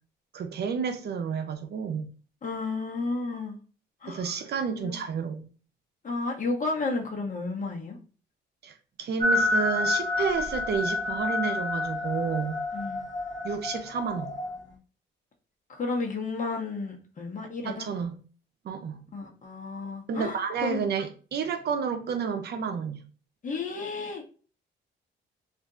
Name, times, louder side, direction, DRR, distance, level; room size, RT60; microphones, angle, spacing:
voice 1, 0.3-2.1 4.1-5.5 8.6-12.6 13.4-14.3 17.6-18.2 18.6-19.0 20.1-23.0, right 6 dB, 55° right, 0.7 m, -30 dB
voice 2, 2.4-3.6 4.0-4.4 4.7-5.0 6.0-8.0 12.7-13.1 15.7-17.9 19.1-20.8 23.4-24.3, left 3 dB, 40° left, 1.0 m, -32 dB
sound 1, 9.2-14.6, left 2 dB, 20° left, 0.7 m, -29 dB
2.6 x 2.2 x 3.7 m
cardioid pair, 90°, 20 cm